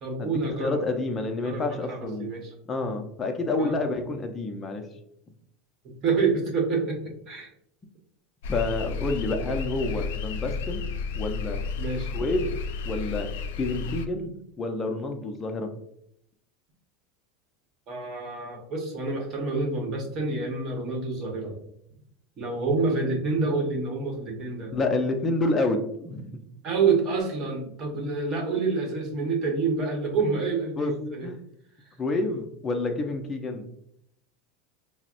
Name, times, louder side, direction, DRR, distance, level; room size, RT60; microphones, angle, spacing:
voice 1, 0.0-0.8 1.3-2.5 3.6-3.7 5.8-7.5 11.8-12.1 17.9-21.6 22.4-24.7 26.6-31.3, right 4 dB, 35° right, 1 dB, 1.0 m, -28 dB
voice 2, 0.6-2.3 2.7-4.9 8.5-10.8 11.1-11.6 12.1-12.5 12.8-13.3 13.6-14.3 14.6-15.7 24.7-26.3 30.8-30.9 31.2-31.4 32.0-33.6, left 2 dB, 20° left, 4 dB, 0.5 m, -28 dB
sound 1, 8.4-14.1, left 5 dB, 90° left, 0.4 m, -32 dB
5.7 x 2.0 x 2.5 m, 0.73 s
supercardioid pair, 160°, 0 cm